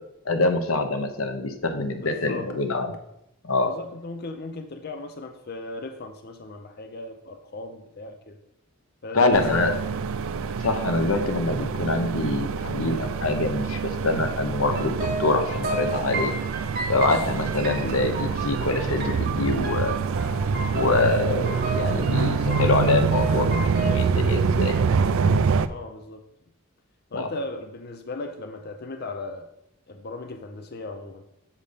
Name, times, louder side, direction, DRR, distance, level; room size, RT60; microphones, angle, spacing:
voice 1, 0.3-2.9 3.4-3.7 9.1-9.7 10.6-16.3 16.9-20.0 20.7-24.7 27.1-27.3, left 2 dB, 85° left, 7 dB, 0.9 m, -25 dB
voice 2, 2.0-2.5 3.6-8.4 9.0-10.0 25.7-26.2 27.1-29.5 29.9-31.2, left 2 dB, 50° left, 6 dB, 0.6 m, -37 dB
sound 1, 9.3-25.7, right 5 dB, 75° right, 0.4 m, -26 dB
sound 2, 14.7-24.1, right 2 dB, 50° right, 1.6 m, -34 dB
7.4 x 5.3 x 5.1 m, 0.83 s
head